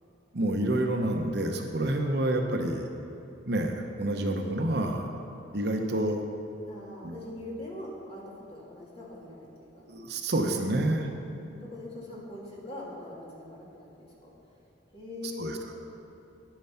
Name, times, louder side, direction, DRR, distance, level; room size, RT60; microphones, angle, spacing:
voice 1, 0.3-2.9 3.5-5.1 5.5-6.2 7.0-7.1 9.9-11.1 15.4-15.6, right 1 dB, 55° right, 3 dB, 0.9 m, -28 dB
voice 2, 6.6-9.8 11.0-14.3 14.9-15.7, left 2 dB, 30° left, -6 dB, 2.6 m, -42 dB
10.0 x 9.1 x 5.7 m, 2.7 s
head